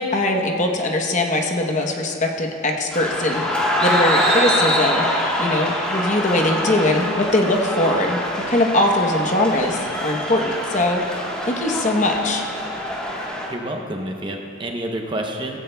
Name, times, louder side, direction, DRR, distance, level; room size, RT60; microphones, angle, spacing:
voice 1, 0.0-5.0 5.4-8.2 8.5-12.5, left 1 dB, 35° left, 2 dB, 0.9 m, -21 dB
sound 1, 2.9-13.5, equal, 5° left, 1.2 m, -24 dB
voice 2, 13.5-15.6, right 1 dB, 20° right, 2 dB, 0.7 m, -28 dB
16.0 x 15.5 x 2.3 m, 2.7 s
head